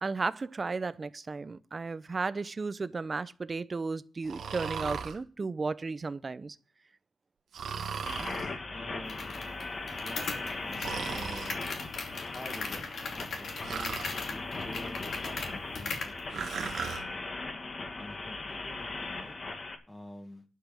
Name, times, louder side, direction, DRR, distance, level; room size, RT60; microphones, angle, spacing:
voice 1, 0.0-6.6, right 4 dB, 35° right, 0.7 m, -34 dB
Breathing, 4.2-5.2 7.5-8.5 10.8-11.5 13.6-14.1 16.3-17.0, right 6 dB, 85° right, 1.6 m, -37 dB
sound 1, 8.1-19.8, left 3 dB, 45° left, 2.2 m, -38 dB
voice 2, 8.1-9.3 10.0-11.7 12.3-14.0 14.3-17.3 18.0-19.3 19.9-20.4, left 1 dB, 15° left, 1.9 m, -48 dB
sound 2, 9.1-16.2, left 4 dB, 70° left, 2.6 m, -39 dB
11.5 x 5.9 x 8.5 m
wide cardioid pair, 105°, 0 cm